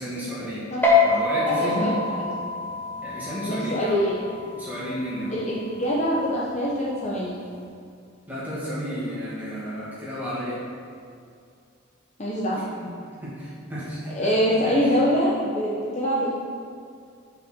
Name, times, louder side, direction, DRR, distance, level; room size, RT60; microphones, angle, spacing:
voice 1, 0.0-0.7 1.0-2.0 3.0-4.0 4.5-5.3 8.3-10.6 12.8-12.9 13.2-15.0, equal, 10° right, -9 dB, 2.2 m, -32 dB
sound 1, 0.8-7.6, left 4 dB, 10° left, 1.1 m, -27 dB
voice 2, 1.5-2.3 3.5-4.2 5.3-7.4 12.2-12.6 14.1-16.3, equal, 35° left, -5 dB, 0.9 m, -24 dB
6.9 x 5.8 x 6.1 m, 2.4 s
head